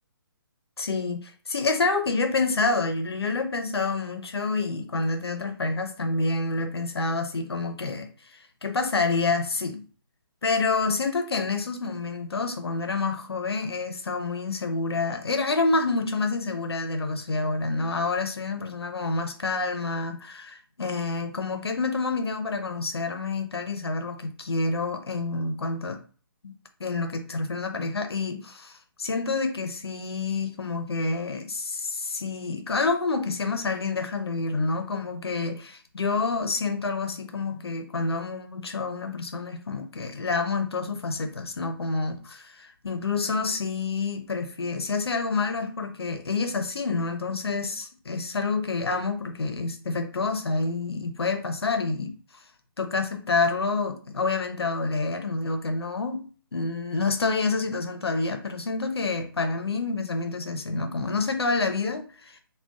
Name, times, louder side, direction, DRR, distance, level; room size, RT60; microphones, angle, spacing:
voice 1, 0.8-9.8 10.4-26.0 26.4-52.1 52.8-56.3 56.5-62.4, left 3 dB, 90° left, 0.6 m, -28 dB
3.7 x 2.2 x 2.3 m
hypercardioid pair, 150°, 13 cm